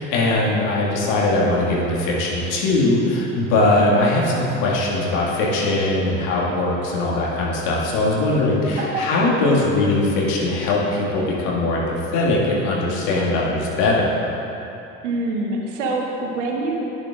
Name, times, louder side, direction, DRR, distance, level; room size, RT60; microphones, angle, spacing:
voice 1, 0.0-14.2, left 2 dB, 60° left, -4 dB, 2.0 m, -20 dB
voice 2, 8.8-9.1 15.0-16.8, right 2 dB, 75° right, 0 dB, 1.3 m, -25 dB
11.5 x 9.1 x 2.5 m, 2.9 s
figure-of-eight pair, 65°, 37 cm